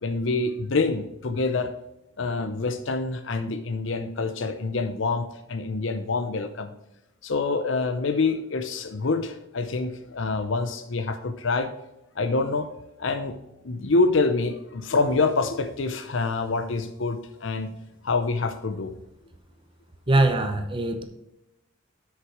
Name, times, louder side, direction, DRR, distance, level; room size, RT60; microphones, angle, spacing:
voice 1, 0.0-1.7 2.2-6.7 7.2-11.7 12.2-12.7 13.0-13.4 13.6-17.7 18.0-18.9, left 3 dB, 65° left, 8 dB, 0.7 m, -26 dB
voice 2, 20.1-21.0, right 2 dB, 25° right, 7 dB, 0.8 m, -22 dB
8.0 x 6.7 x 4.7 m, 0.92 s
head